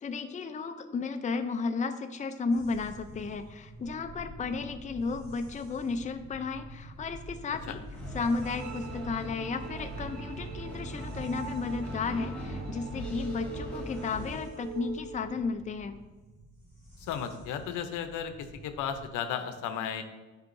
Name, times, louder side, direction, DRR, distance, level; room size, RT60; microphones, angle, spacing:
voice 1, 0.0-7.8 8.1-16.0, left 4 dB, 25° left, 8 dB, 0.5 m, -33 dB
sound 1, 2.5-19.1, right 1 dB, 20° right, 2.1 m, -49 dB
sound 2, 7.9-14.4, equal, 5° left, 1.8 m, -40 dB
sound 3, 8.4-15.4, right 5 dB, 65° right, 0.6 m, -45 dB
voice 2, 17.0-20.0, left 8 dB, 90° left, 8 dB, 0.7 m, -34 dB
9.4 x 4.7 x 2.6 m, 1.2 s
cardioid pair, 90°, 30 cm